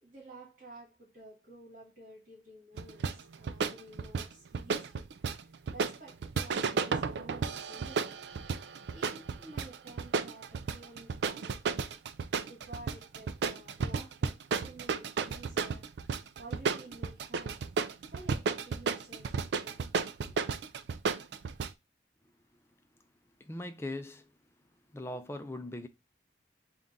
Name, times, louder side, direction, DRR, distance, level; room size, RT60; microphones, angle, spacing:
voice 1, 0.0-5.1 5.7-8.2 8.9-12.0 12.5-15.9 16.4-17.6 18.1-19.8 20.3-20.4, right 1 dB, 45° right, 1.8 m, -52 dB
sound 1, 2.8-21.7, right 5 dB, 75° right, 0.4 m, -33 dB
voice 2, 23.4-24.3 24.9-25.9, left 1 dB, 15° left, 0.4 m, -40 dB
3.7 x 2.4 x 3.9 m
head